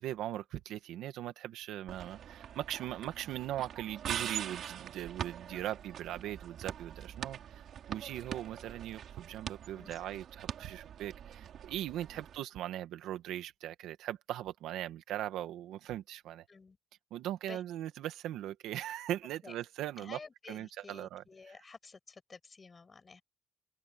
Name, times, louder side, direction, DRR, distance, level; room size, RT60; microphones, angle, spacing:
voice 1, 0.0-16.5 17.1-20.2 20.5-21.2, right 12 dB, 90° right, 2.0 m, -40 dB
sound 1, 1.9-12.4, right 9 dB, 65° right, 5.9 m, -43 dB
voice 2, 9.7-10.2 12.1-12.3 16.5-16.8 17.4-17.6 19.4-19.5 20.0-23.2, left 4 dB, 30° left, 7.4 m, -52 dB
cardioid pair, 90°, 0 cm